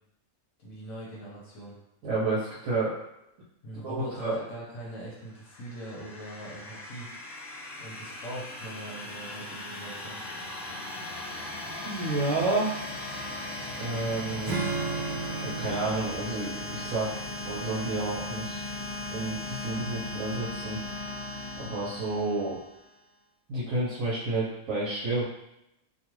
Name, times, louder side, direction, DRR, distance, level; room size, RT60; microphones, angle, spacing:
voice 1, 0.6-1.7 3.6-7.1 7.8-10.2, right 1 dB, 70° left, -6 dB, 1.1 m, -42 dB
voice 2, 2.0-3.0 3.8-4.4 11.8-12.7 13.8-14.6 15.4-17.1 17.4-18.6 19.1-20.8 21.6-22.6 23.5-25.2, right 2 dB, 70° right, -8 dB, 1.0 m, -30 dB
sound 1, 5.3-22.9, left 2 dB, 50° left, 0.7 m, -38 dB
Acoustic guitar / Strum, 14.4-17.9, right 4 dB, 40° right, 0.9 m, -35 dB
2.6 x 2.4 x 3.0 m, 0.85 s
omnidirectional pair, 1.5 m